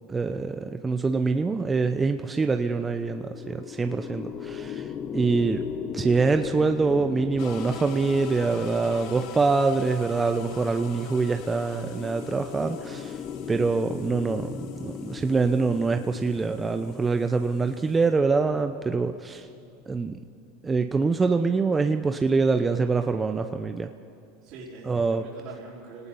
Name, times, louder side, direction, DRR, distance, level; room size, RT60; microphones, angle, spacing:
voice 1, 0.1-4.9 5.1-5.6 5.9-13.2 13.5-19.5 19.9-20.2 20.6-23.9 24.9-25.2, right 4 dB, 20° right, 7 dB, 0.8 m, -25 dB
sound 1, 2.7-19.9, left 7 dB, 40° left, 1.1 m, -39 dB
sound 2, 7.4-18.1, left 6 dB, 60° left, 1.8 m, -43 dB
voice 2, 24.4-26.1, right 3 dB, 55° right, -8 dB, 4.7 m, -44 dB
29.0 x 18.5 x 5.5 m, 2.5 s
supercardioid pair, 110°, 0 cm